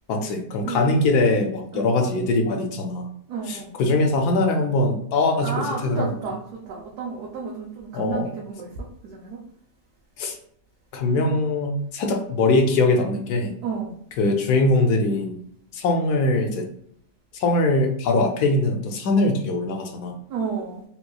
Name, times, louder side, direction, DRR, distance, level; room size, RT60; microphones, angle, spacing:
voice 1, 0.1-3.1 3.5-6.1 7.9-8.3 10.2-10.3 10.9-13.5 14.2-15.4 15.7-16.7 17.3-20.1, left 2 dB, 75° left, 3 dB, 1.1 m, -22 dB
voice 2, 3.3-3.7 5.4-9.4 13.6-13.9 20.3-20.8, right 5 dB, 75° right, -2 dB, 1.1 m, -31 dB
3.8 x 2.9 x 2.2 m, 0.66 s
omnidirectional pair, 1.8 m